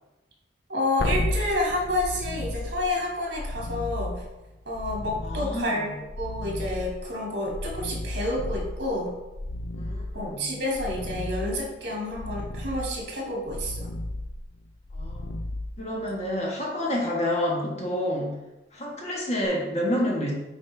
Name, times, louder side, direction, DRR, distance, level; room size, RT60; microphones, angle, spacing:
voice 1, 0.7-4.2 4.7-9.1 10.1-13.9, left 1 dB, 65° right, -3 dB, 2.2 m, -29 dB
sound 1, 1.0-16.3 19.4-19.5, left 1 dB, 75° left, 0.6 m, -34 dB
voice 2, 5.2-5.9 9.7-10.5 14.9-15.2 15.8-18.4 18.7-20.3, left 1 dB, 35° left, -3 dB, 1.5 m, -29 dB
8.9 x 4.4 x 3.4 m, 1.0 s
head